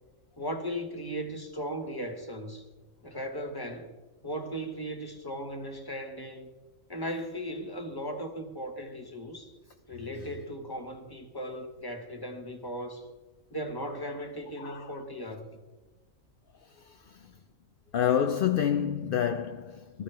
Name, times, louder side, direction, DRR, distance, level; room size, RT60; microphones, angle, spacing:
voice 1, 0.4-2.6 3.0-3.9 4.2-6.5 6.9-9.6 9.9-13.1 13.5-15.6, equal, 20° left, 1.3 m, -37 dB
voice 2, 14.6-14.9 16.8-17.3 17.9-20.0, left 9 dB, 60° left, 0.6 m, -28 dB
19.0 x 13.5 x 3.4 m
omnidirectional pair, 1.4 m